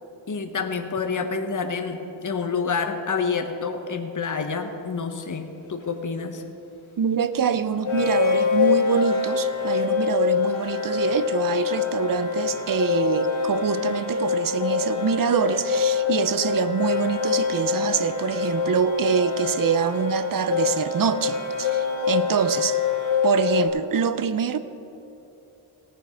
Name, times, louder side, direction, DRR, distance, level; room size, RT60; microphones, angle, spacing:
voice 1, 0.3-6.4, left 5 dB, 40° left, 6 dB, 1.0 m, -28 dB
sound 1, 5.2-5.3 7.9-23.7, left 6 dB, 75° left, 2.0 m, -25 dB
voice 2, 7.0-22.8 23.2-24.6, right 7 dB, 45° right, 12 dB, 0.6 m, -25 dB
18.0 x 6.9 x 5.0 m, 3.0 s
cardioid pair, 55°, 48 cm